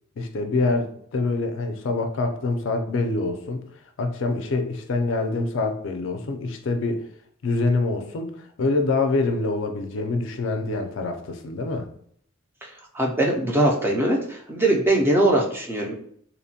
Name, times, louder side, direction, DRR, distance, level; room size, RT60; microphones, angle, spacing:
voice 1, 0.2-3.6 4.0-7.0 7.4-11.9, left 3 dB, 65° left, 5 dB, 0.4 m, -25 dB
voice 2, 12.9-15.9, right 1 dB, 10° right, -1 dB, 0.3 m, -21 dB
2.8 x 2.1 x 2.7 m, 0.64 s
head